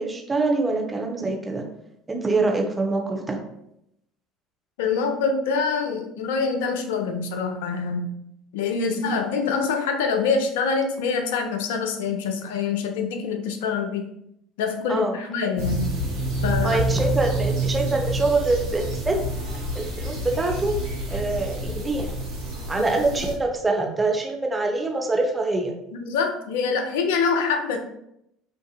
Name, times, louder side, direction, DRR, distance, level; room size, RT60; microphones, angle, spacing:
voice 1, 0.0-1.6 2.1-3.4 8.7-9.0 14.9-15.2 16.6-19.2 19.5-20.7 21.1-22.1 22.7-25.7, right 3 dB, 20° right, 1 dB, 0.6 m, -25 dB
voice 2, 4.8-8.1 8.5-14.0 14.6-15.9 16.4-16.8 26.0-27.8, left 5 dB, 70° left, 4 dB, 0.3 m, -25 dB
sound 1, 15.6-23.3, right 1 dB, 65° right, 0.9 m, -28 dB
2.6 x 2.4 x 2.4 m, 0.79 s
figure-of-eight pair, 65°, 0 cm